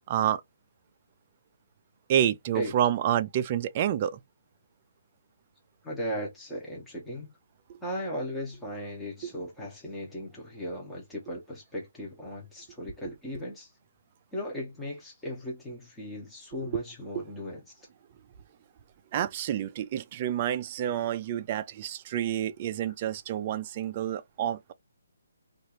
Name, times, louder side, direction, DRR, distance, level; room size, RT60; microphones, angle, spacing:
voice 1, 0.1-0.4 2.1-4.2 16.7-16.8 17.1-17.2 19.1-24.7, right 10 dB, 25° right, 0.3 m, -28 dB
voice 2, 5.8-7.3 7.8-13.7 14.3-17.9 22.9-23.0, equal, 5° left, 0.8 m, -37 dB
3.1 x 2.4 x 2.8 m
hypercardioid pair, 165°, 0 cm